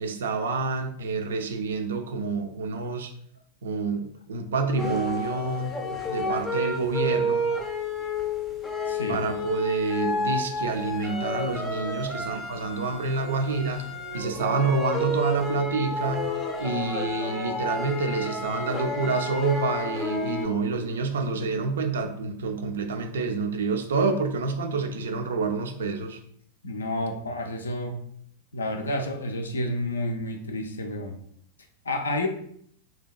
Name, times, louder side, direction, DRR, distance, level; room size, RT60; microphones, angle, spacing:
voice 1, 0.0-3.1 3.6-7.5 9.1-13.9 14.1-16.3 16.6-26.2, right 4 dB, 65° right, 6 dB, 0.3 m, -28 dB
sound 1, 4.8-20.5, left 1 dB, 10° left, 0.5 m, -30 dB
voice 2, 8.9-9.2 26.6-28.0 28.5-31.2 31.8-32.3, left 1 dB, 70° left, 5 dB, 0.3 m, -30 dB
2.7 x 2.1 x 2.2 m, 0.67 s
figure-of-eight pair, 90°, 0 cm